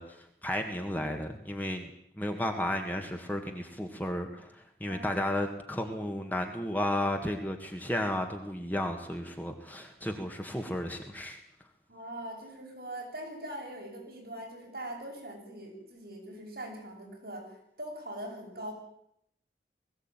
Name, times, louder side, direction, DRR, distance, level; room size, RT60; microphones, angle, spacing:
voice 1, 0.0-1.9 2.2-11.4, left 1 dB, 10° left, 4 dB, 1.7 m, -33 dB
voice 2, 4.8-5.2 11.9-18.7, right 1 dB, 60° right, 0 dB, 7.9 m, -42 dB
20.5 x 16.0 x 9.0 m, 0.75 s
head